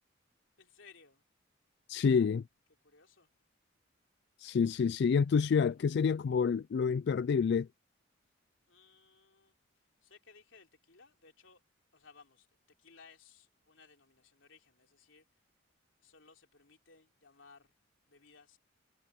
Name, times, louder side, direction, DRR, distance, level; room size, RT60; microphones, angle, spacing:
voice 1, 0.6-1.2 2.8-3.3 8.7-9.6 10.0-11.6 11.9-12.5 12.8-15.2 16.0-17.7 18.1-18.6, left 5 dB, 80° left, 3.3 m, -60 dB
voice 2, 1.9-2.4 4.4-7.7, left 6 dB, 60° left, 0.3 m, -28 dB
head